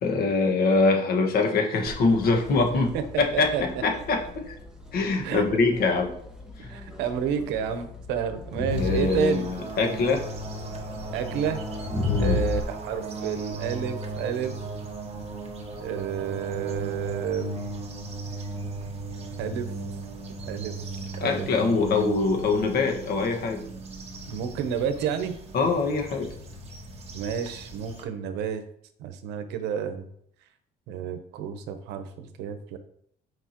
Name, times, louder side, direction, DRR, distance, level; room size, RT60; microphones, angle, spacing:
voice 1, 0.0-4.5 4.9-6.1 6.6-6.7 8.8-10.2 12.1-12.4 21.2-23.6 25.5-26.3, left 3 dB, 65° left, 2 dB, 1.6 m, -24 dB
Crowd, 1.9-12.6, left 3 dB, 5° right, 1.4 m, -34 dB
voice 2, 2.9-3.6 5.2-5.4 6.7-9.5 11.1-11.6 12.2-14.5 15.8-17.5 19.4-19.7 20.4-20.7 21.2-21.5 24.3-25.4 27.1-28.6 29.0-30.0 30.9-32.8, right 8 dB, 90° right, 8 dB, 0.9 m, -30 dB
sound 1, 8.7-28.0, right 3 dB, 35° right, 1.5 m, -37 dB
7.9 x 5.2 x 3.0 m, 0.69 s
cardioid pair, 110°, 17 cm